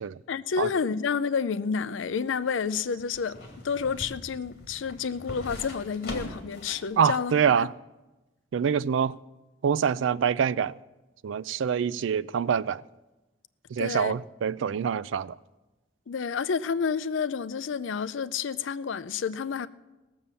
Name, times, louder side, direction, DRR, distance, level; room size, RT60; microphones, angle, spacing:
voice 1, 0.3-3.4 3.6-7.7 13.8-14.2 16.1-19.7, left 6 dB, 80° left, 0.5 m, -30 dB
sound 1, 1.8-6.9 7.3-7.4, left 1 dB, 55° left, 2.3 m, -42 dB
voice 2, 7.0-7.7 8.5-9.2 9.6-10.7 11.2-12.8 13.7-15.4, right 7 dB, 80° right, 0.4 m, -25 dB
17.0 x 7.1 x 6.8 m
head